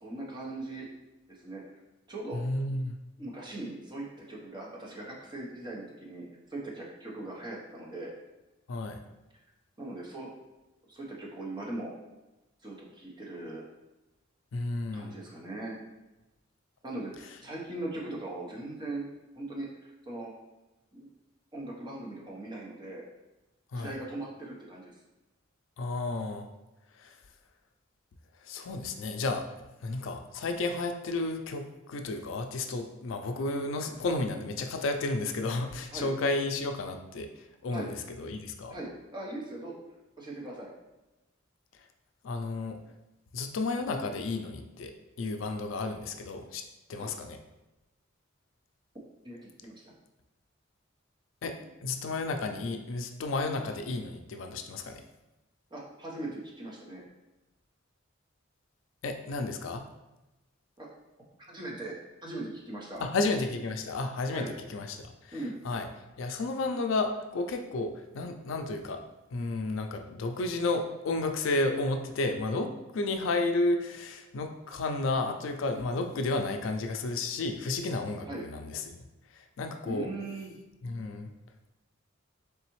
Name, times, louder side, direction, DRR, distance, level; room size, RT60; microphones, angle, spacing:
voice 1, 0.0-0.9 1.3-1.6 2.1-2.4 3.2-8.1 9.8-10.3 10.8-11.9 12.6-13.6 14.9-15.8 16.8-19.1 19.3-20.3 20.9-21.1 21.5-23.0 23.7-24.9 35.9-36.1 37.7-37.9 38.7-39.8 40.2-40.7 46.9-47.1 49.2-49.8 51.6-51.7 55.7-57.0 60.8-60.9 61.5-63.0 64.3-64.5 65.3-65.6 78.3-78.4 79.8-80.6, right 2 dB, 25° right, -3 dB, 0.8 m, -40 dB
voice 2, 2.3-3.0 8.7-9.0 14.5-15.1 23.7-23.9 25.8-26.5 26.9-27.1 28.4-29.5 29.8-38.8 42.2-42.8 43.3-46.6 46.9-47.4 51.4-55.0 59.0-59.9 63.0-65.3 65.6-65.9 66.2-69.0 69.3-79.0 79.3-80.1 80.8-81.3, left 2 dB, 70° left, 6 dB, 0.4 m, -32 dB
4.0 x 3.4 x 3.0 m, 1.0 s
head